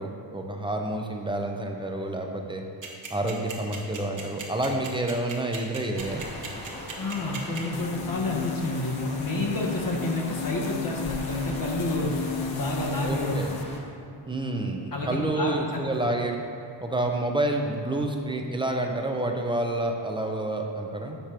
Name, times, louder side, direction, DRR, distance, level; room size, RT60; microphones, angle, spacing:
voice 1, 0.0-2.6 3.1-6.2 13.0-13.6 14.2-16.4 16.8-21.2, right 1 dB, 10° right, 3 dB, 0.6 m, -29 dB
sound 1, 2.8-7.8, right 6 dB, 40° right, 1.1 m, -37 dB
sound 2, 5.9-13.8, left 1 dB, 15° left, 1.1 m, -40 dB
voice 2, 7.0-13.4 14.9-15.8, left 2 dB, 45° left, -2 dB, 1.1 m, -29 dB
sound 3, 7.7-13.6, left 6 dB, 65° left, 0.5 m, -34 dB
6.8 x 4.4 x 4.4 m, 2.7 s
cardioid pair, 95°, 48 cm